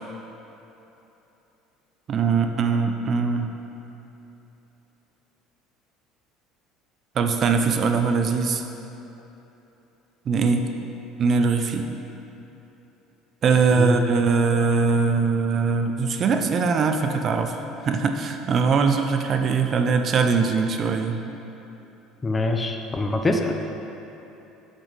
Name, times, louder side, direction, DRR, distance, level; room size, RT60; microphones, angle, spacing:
voice 1, 2.1-3.5 7.2-8.6 10.3-10.7 11.2-11.9 13.4-17.6 17.9-21.2, right 5 dB, 40° right, 6 dB, 0.5 m, -21 dB
voice 2, 22.2-23.5, left 2 dB, 20° left, 4 dB, 0.6 m, -24 dB
7.0 x 6.1 x 4.0 m, 3.0 s
supercardioid pair, 110°, 0 cm